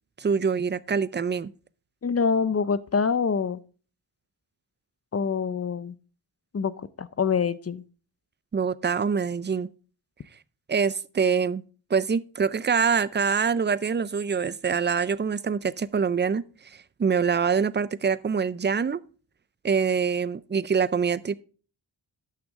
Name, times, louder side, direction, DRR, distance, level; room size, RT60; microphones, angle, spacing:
voice 1, 0.2-1.5 8.5-9.7 10.7-11.6 11.9-19.0 19.6-21.3, right 6 dB, 25° right, 0.4 m, -25 dB
voice 2, 2.0-3.6 5.1-5.9 6.5-7.8, left 5 dB, 30° left, 0.5 m, -25 dB
11.5 x 6.3 x 3.6 m
wide cardioid pair, 70°, 47 cm